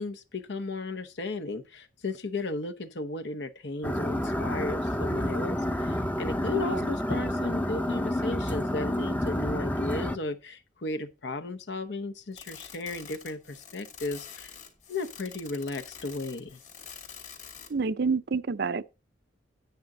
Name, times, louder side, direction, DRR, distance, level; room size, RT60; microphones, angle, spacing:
voice 1, 0.0-14.5 14.9-16.6, left 2 dB, 70° left, 1.0 m, -35 dB
sound 1, 3.8-10.2, left 1 dB, 10° left, 0.6 m, -29 dB
voice 2, 6.5-6.9 17.7-18.9, right 4 dB, 60° right, 0.5 m, -28 dB
sound 2, 12.3-17.9, left 7 dB, 45° left, 2.5 m, -46 dB
9.4 x 9.4 x 3.9 m
head